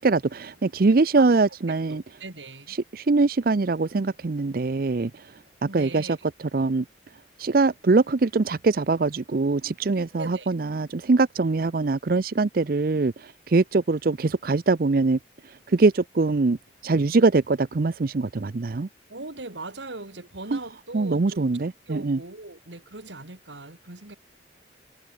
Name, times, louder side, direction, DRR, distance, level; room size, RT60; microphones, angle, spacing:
voice 1, 0.0-2.0 2.7-5.3 5.7-6.8 7.4-16.6 16.8-18.9 20.5-20.6 20.9-22.2, right 3 dB, 50° right, 0.5 m, -23 dB
voice 2, 1.9-2.7 5.7-6.2 10.2-10.5 19.1-21.4 21.9-24.2, right 2 dB, 85° right, 3.1 m, -40 dB
head